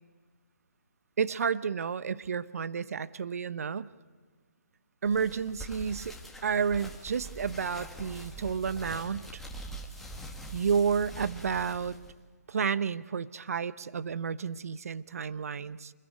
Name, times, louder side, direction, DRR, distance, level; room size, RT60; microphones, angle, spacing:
voice 1, 1.2-3.9 5.0-6.2 6.4-9.4 10.5-12.0 12.5-15.9, right 6 dB, 60° right, 15 dB, 1.0 m, -31 dB
sound 1, 5.0-12.1, right 1 dB, 5° left, 2.2 m, -44 dB
27.0 x 22.0 x 9.4 m, 1.5 s
figure-of-eight pair, 145°, 9 cm